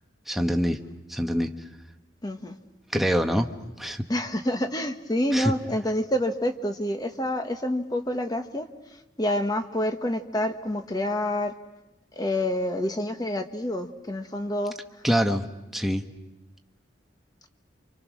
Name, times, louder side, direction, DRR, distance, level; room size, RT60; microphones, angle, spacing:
voice 1, 0.3-0.8 1.1-1.5 2.9-3.5 3.8-4.0 5.3-5.5 15.0-15.5 15.7-16.0, equal, ahead, 4 dB, 1.1 m, -24 dB
voice 2, 2.2-2.6 4.1-8.7 9.2-11.5 12.1-14.7, left 1 dB, 20° left, 7 dB, 1.3 m, -27 dB
29.5 x 26.0 x 6.3 m, 1.0 s
head